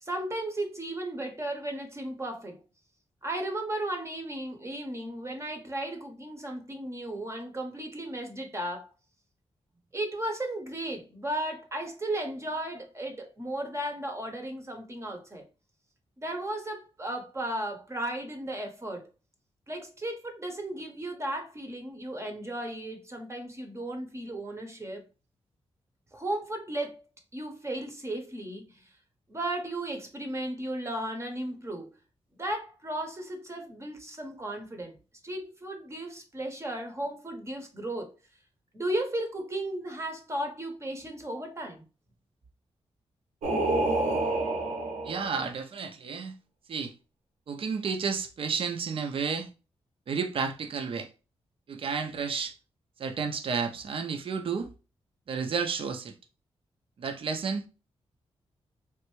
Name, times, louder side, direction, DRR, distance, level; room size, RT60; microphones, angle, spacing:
voice 1, 0.0-2.6 3.2-8.9 9.9-15.4 16.2-19.1 19.7-25.0 26.1-27.0 27.3-28.9 29.3-32.0 32.4-35.0 35.2-38.1 38.7-41.8, right 1 dB, 25° right, 0.8 m, -35 dB
Singing, 43.4-45.4, right 2 dB, 90° right, 0.8 m, -28 dB
voice 2, 45.0-46.4 46.7-46.9 47.5-49.5 50.1-51.1 51.7-52.5 53.0-54.7 55.3-56.1 57.0-57.6, right 5 dB, 55° right, 0.5 m, -31 dB
3.3 x 2.5 x 3.0 m
cardioid pair, 85°, 11 cm